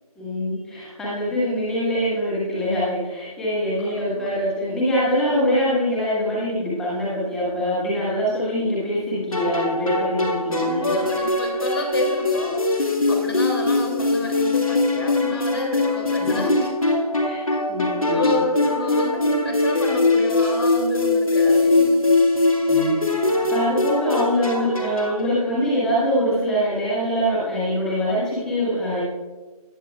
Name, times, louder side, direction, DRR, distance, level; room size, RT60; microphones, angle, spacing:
voice 1, 0.2-10.9 16.2-16.4 17.2-17.4 17.7-18.4 22.7-23.2 23.5-29.0, equal, 5° left, -7 dB, 1.5 m, -24 dB
voice 2, 3.8-4.3 9.5-9.7 10.4-16.8 17.2-17.7 18.1-22.2, left 1 dB, 40° left, 2 dB, 2.7 m, -29 dB
sound 1, 9.3-25.2, left 2 dB, 60° left, 2.2 m, -22 dB
19.5 x 8.2 x 2.4 m, 1.3 s
figure-of-eight pair, 160°, 20 cm